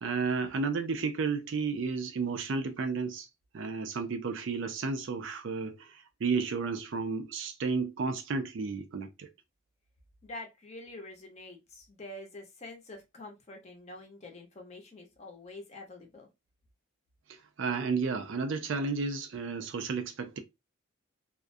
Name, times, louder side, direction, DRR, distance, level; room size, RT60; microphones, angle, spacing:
voice 1, 0.0-3.3 3.5-9.3 17.3-20.4, right 4 dB, 60° right, 0.4 m, -32 dB
voice 2, 10.2-16.3, left 2 dB, 30° left, 0.6 m, -46 dB
2.3 x 2.1 x 2.5 m
head